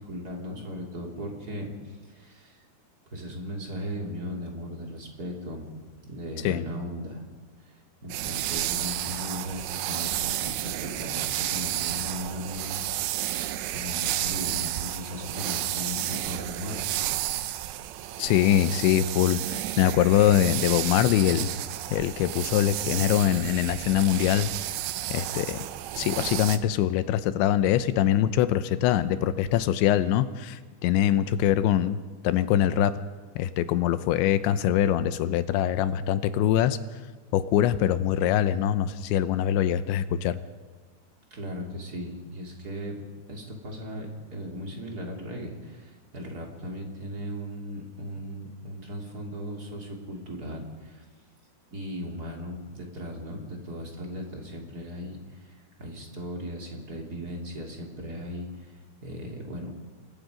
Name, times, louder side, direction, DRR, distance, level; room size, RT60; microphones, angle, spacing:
voice 1, 0.0-2.6 3.1-5.7 6.0-7.2 7.6-13.0 13.7-16.9 41.3-43.0 43.3-51.0 51.7-59.7, equal, 25° right, 0 dB, 3.0 m, -37 dB
sound 1, 8.1-26.6, right 13 dB, 80° right, 2.9 m, -31 dB
voice 2, 18.2-21.5 21.9-24.8 25.1-25.6 26.0-32.9 33.4-36.8 37.3-40.4, left 11 dB, 85° left, 13 dB, 3.1 m, -23 dB
28.5 x 21.5 x 5.1 m, 1.4 s
omnidirectional pair, 5.2 m